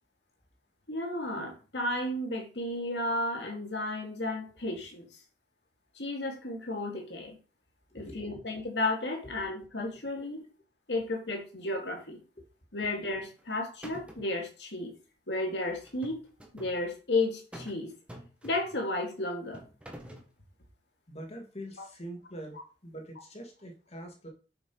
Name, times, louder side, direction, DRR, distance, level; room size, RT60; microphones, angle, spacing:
voice 1, 0.9-5.1 6.0-7.4 7.9-10.4 10.9-12.2 12.7-14.9 15.3-16.2 16.5-17.9 18.4-19.6, left 2 dB, 70° left, 1 dB, 2.3 m, -33 dB
voice 2, 8.0-8.5 9.4-9.5 12.4-12.5 21.1-22.6 22.8-24.3, equal, 35° left, 2 dB, 2.0 m, -44 dB
sound 1, 13.2-13.5 13.8-14.4 15.8-16.8 17.5-17.8 18.1-18.9 19.5-20.3, equal, 5° right, 1.4 m, -47 dB
6.9 x 6.0 x 4.5 m, 0.35 s
head